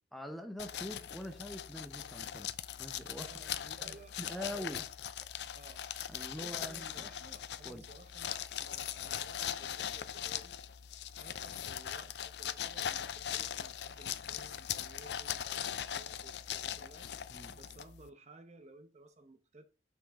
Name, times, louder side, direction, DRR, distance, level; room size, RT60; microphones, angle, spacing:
voice 1, 0.1-2.5 2.8-3.3 3.9-4.8 6.1-7.1 7.6-7.8 17.3-17.6, left 1 dB, ahead, 0.9 m, -44 dB
sound 1, 0.6-18.1, left 10 dB, 70° left, 0.4 m, -40 dB
voice 2, 3.2-4.8 5.5-10.6 11.1-19.6, right 2 dB, 40° right, 0.8 m, -57 dB
6.1 x 5.8 x 3.6 m
head